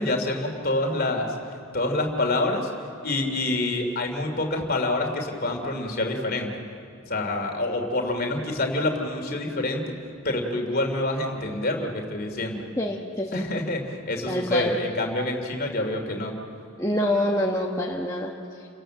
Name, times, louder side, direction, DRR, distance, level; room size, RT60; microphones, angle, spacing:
voice 1, 0.0-1.3 1.7-2.7 3.0-6.5 7.1-9.9 10.2-12.6 13.3-16.3, left 2 dB, 45° left, 3 dB, 2.9 m, -27 dB
voice 2, 12.8-13.5 14.3-14.7 16.8-18.4, left 1 dB, 15° left, -2 dB, 1.2 m, -26 dB
30.0 x 18.0 x 7.8 m, 2.4 s
head